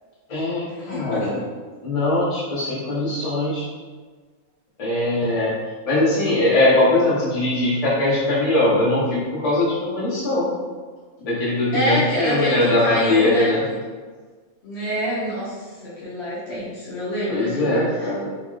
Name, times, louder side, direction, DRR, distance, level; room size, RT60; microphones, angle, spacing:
voice 1, 0.3-1.3 1.8-3.7 4.8-5.5 5.8-10.5 11.2-13.6 17.3-18.3, left 1 dB, 30° left, -8 dB, 0.9 m, -21 dB
voice 2, 0.9-1.4 11.7-13.5 14.6-15.6 15.8-18.1, left 1 dB, 60° left, -8 dB, 1.2 m, -26 dB
3.9 x 3.0 x 2.3 m, 1.4 s
omnidirectional pair, 1.3 m